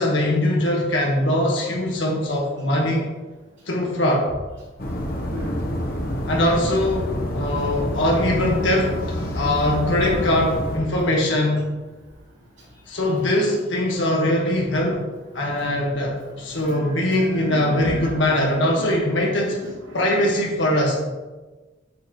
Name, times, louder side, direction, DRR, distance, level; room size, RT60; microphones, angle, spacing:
voice 1, 0.0-3.0 3.7-4.3 6.2-9.0 9.3-11.7 12.9-15.0 15.3-19.6 19.9-20.9, left 1 dB, 80° left, -2 dB, 1.6 m, -21 dB
sound 1, 4.8-10.8, equal, 50° left, 1.0 m, -27 dB
voice 2, 8.1-9.6 10.0-10.4 15.9-20.0, left 1 dB, 85° right, -10 dB, 2.8 m, -37 dB
8.2 x 7.6 x 3.1 m, 1.2 s
head